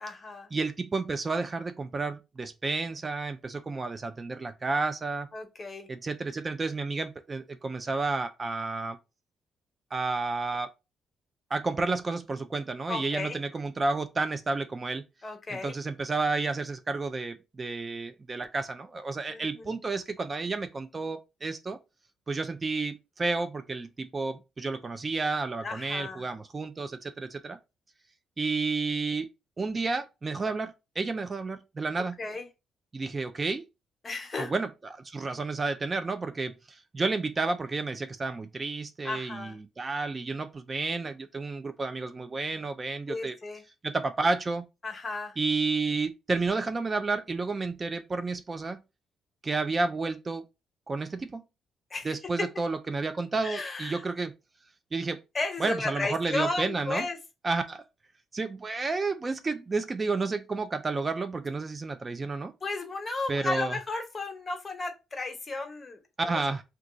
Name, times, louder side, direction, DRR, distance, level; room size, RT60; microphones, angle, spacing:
voice 1, 0.0-0.5 5.3-5.9 12.9-13.4 15.2-15.8 19.3-19.8 25.6-26.3 32.2-32.5 34.0-34.5 39.0-39.6 43.1-43.6 44.8-45.4 51.9-52.1 53.4-54.0 55.3-57.2 62.6-66.0 66.3-66.4, left 3 dB, 30° left, 0.9 m, -34 dB
voice 2, 0.5-5.3 5.9-9.0 9.9-10.7 11.5-15.0 15.6-21.8 22.3-27.6 28.4-29.3 29.6-32.2 32.9-33.6 34.4-43.4 43.8-44.7 45.4-48.8 49.4-50.4 50.9-51.4 52.0-54.3 54.9-55.2 55.6-57.1 57.4-57.8 58.3-62.5 63.3-63.8 66.2-66.6, right 3 dB, 30° right, 0.3 m, -31 dB
2.5 x 2.3 x 3.8 m
cardioid pair, 90°, 0 cm